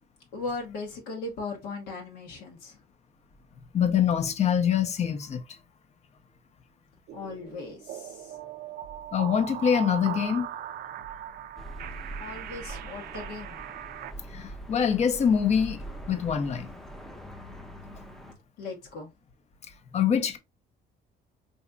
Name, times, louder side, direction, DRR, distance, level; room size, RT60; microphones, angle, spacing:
voice 1, 0.3-2.8 7.1-8.3 12.2-13.6 18.6-19.1, left 3 dB, 85° left, 1.0 m, -38 dB
voice 2, 3.7-5.4 9.1-10.5 14.3-15.8 16.1-16.7 19.9-20.4, left 8 dB, 40° left, 0.6 m, -24 dB
sound 1, 7.1-14.1, right 11 dB, 65° right, 0.4 m, -39 dB
sound 2, 11.6-18.3, right 1 dB, ahead, 0.5 m, -43 dB
4.0 x 2.7 x 2.2 m
cardioid pair, 110°, 17 cm